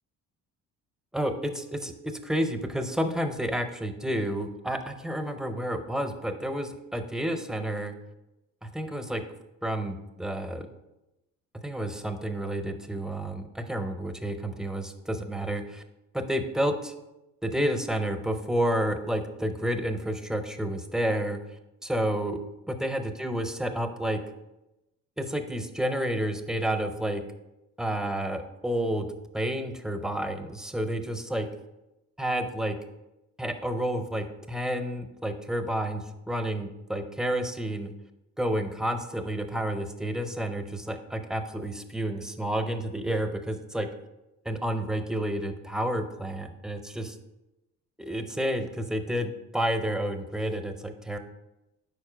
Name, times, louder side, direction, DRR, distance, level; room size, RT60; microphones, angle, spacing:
voice 1, 1.1-7.9 8.6-9.2 9.6-10.7 11.6-15.8 16.1-16.9 17.4-21.4 21.8-22.4 22.7-24.2 25.2-27.2 27.8-29.1 29.3-31.5 32.2-32.7 33.4-37.9 38.4-43.9 44.4-47.2 48.0-51.2, right 1 dB, ahead, 7 dB, 0.5 m, -30 dB
5.2 x 4.4 x 4.9 m, 0.95 s
cardioid pair, 95°, 33 cm